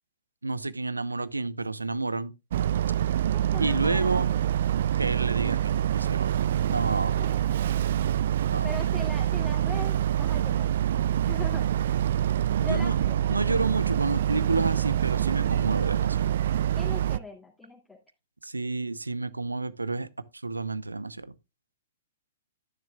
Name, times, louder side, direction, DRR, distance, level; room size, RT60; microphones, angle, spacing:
voice 1, 0.4-2.3 3.6-4.3 5.0-6.4 6.7-7.3 8.5-8.7 12.6-13.0 13.3-16.3 18.4-21.3, right 3 dB, 85° right, 0.8 m, -30 dB
Boat Water vehicle, 2.5-17.2, right 11 dB, 55° right, 0.4 m, -26 dB
voice 2, 3.3-4.4 7.1-7.7 8.6-10.7 11.2-12.0 12.6-13.2 16.8-18.0, left 3 dB, 5° left, 2.3 m, -41 dB
12.0 x 10.5 x 2.3 m
figure-of-eight pair, 110°, 0 cm